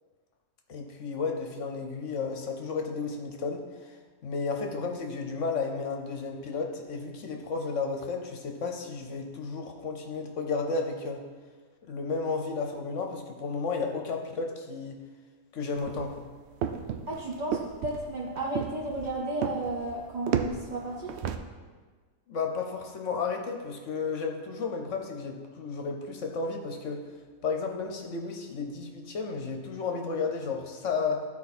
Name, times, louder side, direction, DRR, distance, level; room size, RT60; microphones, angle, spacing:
voice 1, 0.7-3.9 4.2-11.2 11.8-15.0 15.5-16.3 22.3-27.0 27.4-31.3, left 4 dB, 55° left, 3 dB, 1.1 m, -33 dB
sound 1, 15.7-21.4, right 8 dB, 70° right, 0.6 m, -33 dB
voice 2, 17.1-21.2, right 1 dB, 35° right, -2 dB, 0.8 m, -33 dB
13.0 x 4.6 x 4.2 m, 1.4 s
omnidirectional pair, 1.6 m